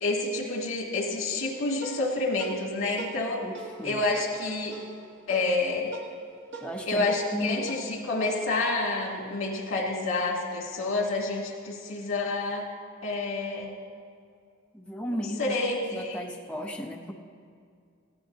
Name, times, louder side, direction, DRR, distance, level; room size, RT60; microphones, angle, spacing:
voice 1, 0.0-3.4 3.8-4.8 5.3-5.9 6.9-12.7 13.0-13.7 15.4-16.2, left 2 dB, 75° left, -1 dB, 2.2 m, -28 dB
sound 1, 1.4-10.2, right 4 dB, 60° right, 1.5 m, -45 dB
voice 2, 6.6-7.1 7.3-7.6 14.7-15.5 15.9-17.1, equal, 5° left, 0 dB, 0.7 m, -34 dB
18.0 x 15.5 x 2.8 m, 2.2 s
head